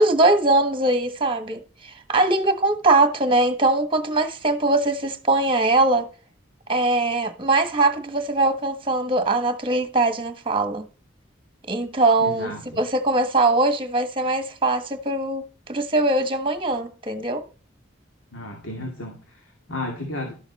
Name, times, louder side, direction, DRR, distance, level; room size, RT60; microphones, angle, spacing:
voice 1, 0.0-6.1 6.7-10.8 11.7-17.4, right 2 dB, 25° right, 1.3 m, -21 dB
voice 2, 12.2-12.8 18.3-20.4, left 1 dB, 85° left, 2.4 m, -33 dB
12.5 x 7.0 x 4.1 m
head